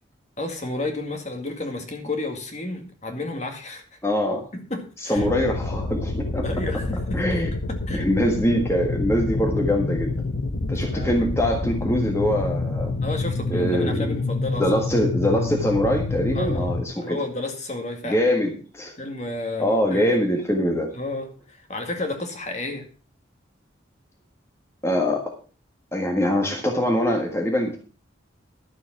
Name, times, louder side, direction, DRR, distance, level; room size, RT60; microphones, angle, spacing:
voice 1, 0.4-3.8 4.5-5.3 6.4-8.1 10.9-11.2 13.0-14.7 16.3-18.3 19.0-20.1 20.9-22.9, left 2 dB, 35° left, 4 dB, 2.0 m, -32 dB
voice 2, 4.0-4.4 5.0-6.4 7.1-7.5 7.9-10.1 10.7-12.9 13.5-14.2 14.6-17.2 18.0-18.9 19.6-20.9 24.8-25.3 25.9-27.8, equal, 15° left, 1 dB, 1.6 m, -23 dB
sound 1, 5.1-16.8, left 3 dB, 75° left, 1.0 m, -27 dB
12.0 x 7.5 x 5.9 m, 0.39 s
head